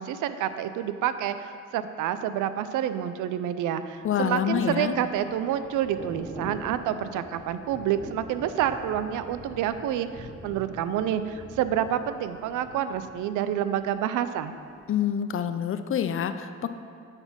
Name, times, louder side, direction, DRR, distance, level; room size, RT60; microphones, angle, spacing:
voice 1, 0.0-14.5, right 10 dB, 85° right, 11 dB, 0.5 m, -28 dB
voice 2, 4.0-4.9 14.9-16.7, left 8 dB, 45° left, 10 dB, 0.5 m, -27 dB
Thunder / Rain, 4.1-14.0 14.4-14.6, right 1 dB, 25° right, 1.4 m, -45 dB
8.8 x 4.1 x 6.1 m, 2.3 s
cardioid pair, 90°, 30 cm